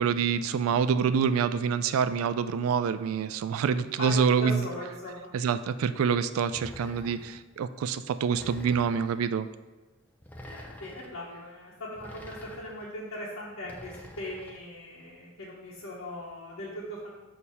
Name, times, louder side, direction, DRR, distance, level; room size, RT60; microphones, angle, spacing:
voice 1, 0.0-4.6 5.3-9.5, right 6 dB, 80° right, 12 dB, 0.3 m, -26 dB
voice 2, 4.0-5.3 10.4-17.1, left 1 dB, 80° left, -7 dB, 1.0 m, -39 dB
sound 1, 6.5-7.4 8.3-9.2 10.2-11.1 12.0-12.8 13.6-14.6, equal, 10° left, 0.5 m, -46 dB
6.4 x 2.8 x 5.5 m, 1.2 s
head